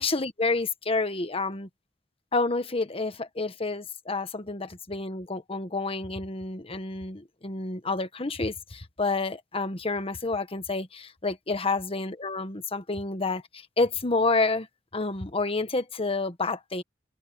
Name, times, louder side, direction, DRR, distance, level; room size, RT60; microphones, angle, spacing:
voice 1, 0.0-1.7 2.3-14.7 14.9-16.8, left 3 dB, 30° left, 1.3 m, -29 dB
head